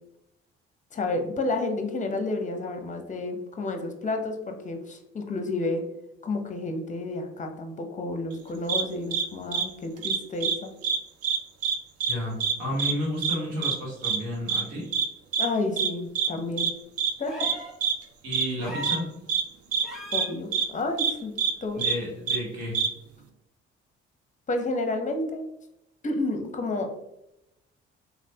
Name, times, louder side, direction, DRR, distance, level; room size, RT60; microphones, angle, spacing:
voice 1, 0.9-5.8 6.2-10.7 15.4-16.7 17.2-17.6 20.1-21.3 21.6-21.9 24.5-25.4 26.0-27.0, left 2 dB, 25° left, 5 dB, 0.6 m, -30 dB
sound 1, 8.7-8.8 9.1-9.2 9.5-9.6 10.0-10.6 10.8-11.0 11.2-11.8 12.0-12.1 12.4-12.5 12.8-12.9 13.2-13.4 13.6-13.8 14.0-14.2 14.5-14.6 14.9-15.1 15.3-15.5 15.8-15.9 16.2-16.3 16.6-16.7 17.0-17.1 17.4-17.5 17.8-17.9 18.3-18.5 18.8-19.0 19.3-19.4 19.7-19.8 20.1-20.3 20.5-20.7 21.0-21.1 21.4-21.5 21.8-21.9 22.3-22.4 22.7-22.9, right 6 dB, 55° right, 0.5 m, -25 dB
voice 2, 12.0-14.9 18.2-19.1 21.7-22.8, equal, 80° right, -3 dB, 1.2 m, -32 dB
sound 2, 17.2-17.8 18.6-19.1 19.8-20.3 21.8-21.9, left 1 dB, ahead, 1.1 m, -38 dB
3.2 x 2.3 x 2.7 m, 0.85 s
hypercardioid pair, 55°, 29 cm